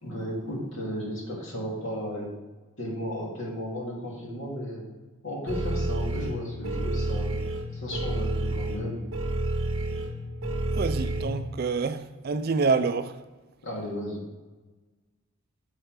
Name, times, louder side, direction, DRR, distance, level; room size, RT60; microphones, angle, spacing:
voice 1, 0.0-2.3 2.8-4.8 5.2-7.4 7.7-9.0 13.6-14.2, equal, 55° left, 2.5 m, -34 dB
sound 1, 5.5-11.2, right 1 dB, 60° right, 1.0 m, -29 dB
voice 2, 10.7-13.2, right 4 dB, 45° right, 0.3 m, -27 dB
6.5 x 6.2 x 4.8 m
head